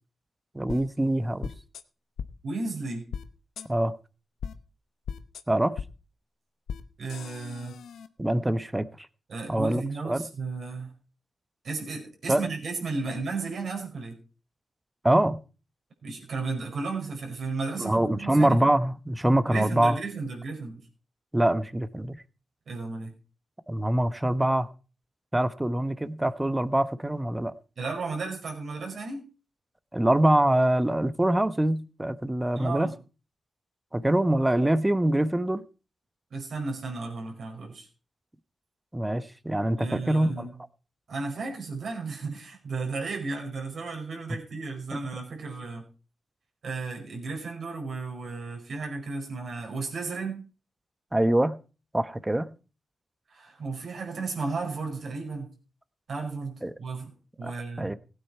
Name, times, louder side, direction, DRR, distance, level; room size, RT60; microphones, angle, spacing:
voice 1, 0.5-1.5 3.7-3.9 5.5-5.7 8.2-8.9 9.5-10.2 12.3-12.4 15.0-15.4 17.8-20.0 21.3-22.2 23.7-24.7 25.3-27.5 29.9-32.9 33.9-35.6 38.9-40.5 51.1-51.6 51.9-52.5 56.6-56.7 57.4-57.5 57.8-57.9, right 1 dB, 15° right, 1.1 m, -24 dB
sound 1, 0.7-0.8 1.4-1.8 2.2-2.3 3.1-3.2 3.6-3.7 4.4-4.5 5.1-5.4 5.8-5.9 6.7-6.8 7.1-8.1, left 7 dB, 85° left, 0.8 m, -36 dB
voice 2, 2.4-3.1 7.0-7.8 9.3-10.9 11.6-14.2 16.0-18.8 19.5-20.8 22.7-23.1 27.8-29.2 32.5-32.9 36.3-37.9 39.8-40.5 41.1-45.8 46.6-50.4 53.3-55.5 56.1-57.9, right 4 dB, 70° right, 5.0 m, -34 dB
16.5 x 9.1 x 4.5 m
supercardioid pair, 45°, 0 cm